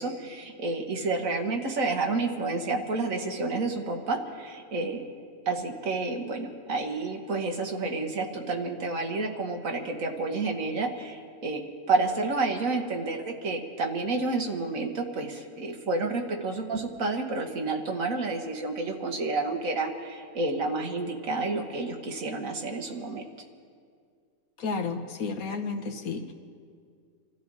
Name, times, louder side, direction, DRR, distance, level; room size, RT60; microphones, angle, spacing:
voice 1, 0.0-5.0 5.4-11.6 11.9-23.2, right 3 dB, 65° right, 3 dB, 1.7 m, -30 dB
voice 2, 24.6-26.3, left 4 dB, 75° left, 5 dB, 1.6 m, -32 dB
26.5 x 13.0 x 4.0 m, 2.1 s
omnidirectional pair, 1.5 m